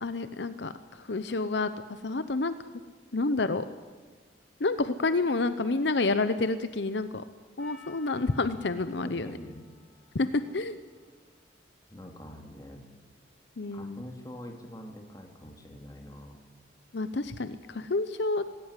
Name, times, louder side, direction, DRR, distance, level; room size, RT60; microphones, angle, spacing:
voice 1, 0.0-2.6 3.1-3.6 4.6-7.2 7.6-9.3 10.1-10.8 13.6-14.1 16.9-18.4, left 3 dB, 65° left, 12 dB, 0.8 m, -29 dB
Percussion, 7.6-11.9, left 8 dB, 5° left, 4.6 m, -57 dB
voice 2, 9.0-9.6 11.9-12.8 13.7-16.4, equal, 20° left, 3 dB, 2.6 m, -44 dB
18.5 x 17.0 x 9.8 m, 1.4 s
head